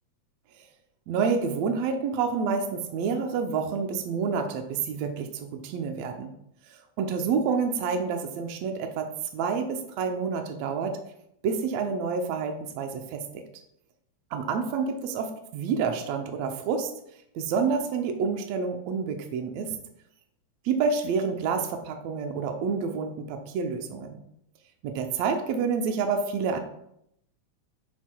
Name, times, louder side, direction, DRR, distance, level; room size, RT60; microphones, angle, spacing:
voice 1, 1.1-6.3 6.7-11.0 11.4-13.4 14.3-16.9 17.3-19.8 20.6-24.2 24.8-26.6, right 5 dB, 75° right, 4 dB, 1.7 m, -28 dB
11.5 x 4.5 x 2.2 m, 0.75 s
omnidirectional pair, 3.4 m